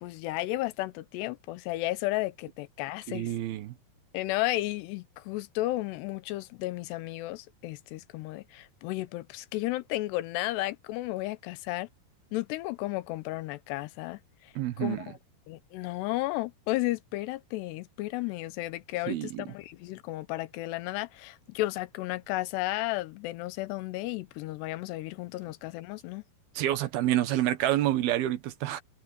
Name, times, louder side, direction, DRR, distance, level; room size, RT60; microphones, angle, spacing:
voice 1, 0.0-3.3 4.1-11.9 12.3-14.2 14.8-15.0 15.5-26.2, left 18 dB, 90° left, 2.9 m, -33 dB
voice 2, 3.1-3.7 14.6-15.1 19.1-19.4 26.6-28.8, right 13 dB, 75° right, 3.0 m, -28 dB
omnidirectional pair, 4.7 m